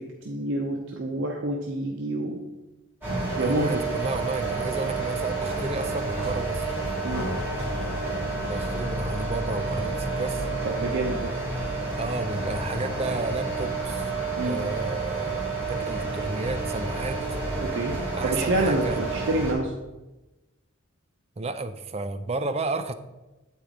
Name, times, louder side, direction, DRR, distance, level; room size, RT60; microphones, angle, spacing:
voice 1, 0.2-2.4 3.4-3.8 7.0-7.3 10.6-11.3 14.4-14.6 17.6-17.9 18.2-19.7, right 2 dB, 65° right, 0 dB, 0.8 m, -27 dB
sound 1, 3.0-19.5, right 3 dB, 10° right, 2.6 m, -30 dB
voice 2, 3.4-6.7 8.4-10.5 12.0-14.1 14.4-17.4 18.1-19.0 21.4-22.9, right 3 dB, 30° right, 10 dB, 0.4 m, -32 dB
8.3 x 4.5 x 5.0 m, 1.1 s
head